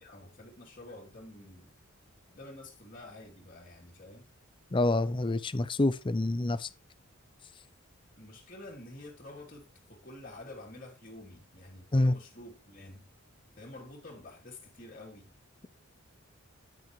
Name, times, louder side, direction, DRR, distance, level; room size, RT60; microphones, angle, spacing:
voice 1, 0.0-1.7 2.3-4.3 8.2-13.1 13.6-15.3, left 1 dB, 40° left, 3.0 m, -49 dB
voice 2, 4.7-6.7 11.9-12.1, left 2 dB, 20° left, 0.5 m, -27 dB
9.8 x 9.0 x 3.1 m
head